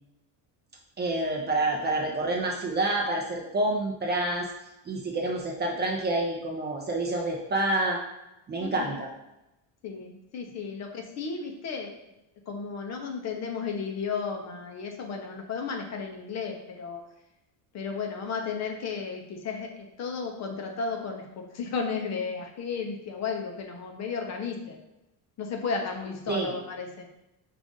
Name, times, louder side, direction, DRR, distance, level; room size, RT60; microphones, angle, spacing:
voice 1, 1.0-4.5 4.8-8.0 8.5-9.1 26.3-26.5, right 2 dB, 25° right, -1 dB, 0.4 m, -28 dB
voice 2, 8.6-9.0 9.8-11.9 12.5-17.0 17.7-24.8 25.4-27.1, left 5 dB, 40° left, 2 dB, 0.5 m, -34 dB
5.2 x 2.4 x 3.6 m, 0.92 s
cardioid pair, 150°, 44 cm